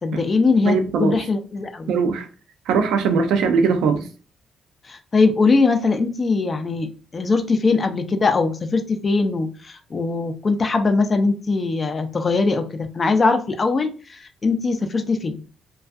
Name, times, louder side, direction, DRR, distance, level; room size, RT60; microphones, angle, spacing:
voice 1, 0.0-1.9 4.9-6.9 7.1-15.4, left 3 dB, 35° left, 0.4 m, -21 dB
voice 2, 0.7-1.2 1.9-2.3 2.7-4.0, right 5 dB, 85° right, 0.4 m, -20 dB
2.5 x 2.3 x 2.3 m
cardioid pair, 90°, 0 cm